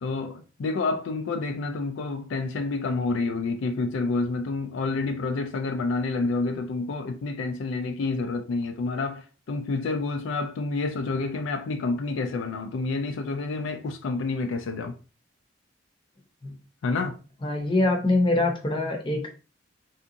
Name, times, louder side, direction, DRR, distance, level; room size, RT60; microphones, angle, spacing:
voice 1, 0.0-9.2 9.5-14.9 16.8-17.1, left 3 dB, 75° left, 0.4 m, -28 dB
voice 2, 17.4-19.3, left 2 dB, 25° left, 0.7 m, -24 dB
3.4 x 2.8 x 2.5 m
head